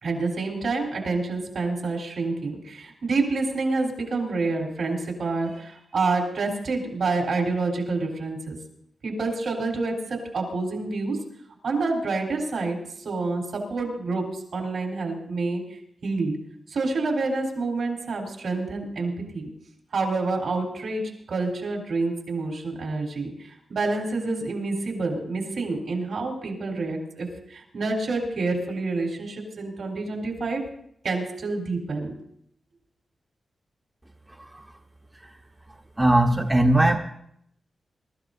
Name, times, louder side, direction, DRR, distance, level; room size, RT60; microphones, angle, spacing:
voice 1, 0.0-8.6 9.0-11.2 11.6-12.8 13.0-15.6 16.0-16.4 16.7-19.5 19.9-23.3 23.7-30.6 31.0-32.1, right 3 dB, 75° right, 0 dB, 3.9 m, -28 dB
voice 2, 36.0-37.0, right 1 dB, 15° right, 2 dB, 1.0 m, -19 dB
23.0 x 13.0 x 2.7 m, 0.70 s
wide cardioid pair, 90°, 0 cm